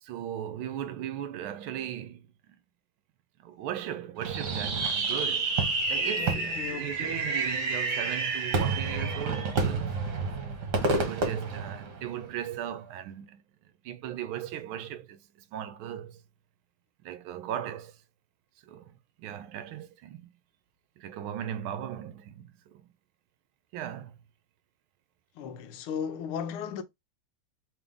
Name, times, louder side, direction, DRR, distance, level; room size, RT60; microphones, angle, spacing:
voice 1, 0.0-2.6 3.4-5.6 5.9-9.9 10.2-10.3 10.9-13.4 13.8-15.2 15.5-16.2 17.0-17.9 18.6-20.3 21.0-22.8 23.7-24.1, right 10 dB, 75° right, 1.4 m, -37 dB
Fireworks, 4.2-12.3, right 3 dB, 55° right, 1.7 m, -29 dB
voice 2, 6.2-7.3 25.3-26.8, left 7 dB, 85° left, 1.6 m, -36 dB
3.7 x 3.6 x 3.5 m
omnidirectional pair, 2.3 m